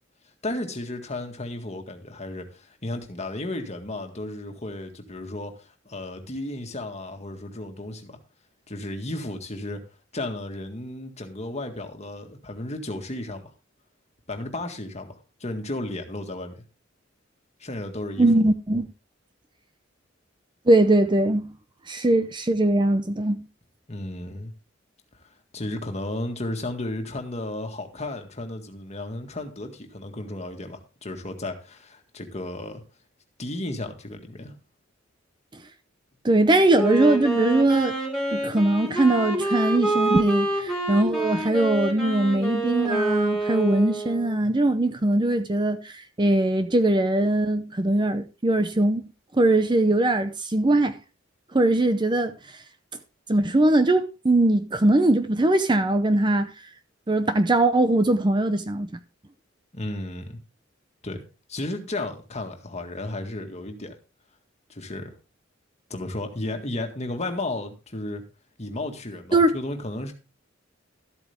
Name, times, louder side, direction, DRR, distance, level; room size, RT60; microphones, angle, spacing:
voice 1, 0.4-8.2 8.7-9.8 10.1-13.4 14.3-16.6 17.6-18.3 23.9-24.5 25.5-32.8 33.4-34.5 59.7-60.4 61.0-61.2 61.5-64.0 64.7-65.2 65.9-68.2 68.6-70.1, left 2 dB, 35° left, 1.8 m, -33 dB
voice 2, 18.2-18.9 20.7-21.5 21.9-23.4 36.2-38.0 38.3-49.1 49.3-51.0 51.5-52.3 53.3-56.5 57.1-58.9 69.3-69.6, right 2 dB, 25° right, 0.6 m, -21 dB
Wind instrument woodwind instrument, 36.7-44.5, right 2 dB, 5° left, 3.7 m, -27 dB
13.0 x 8.4 x 3.5 m
head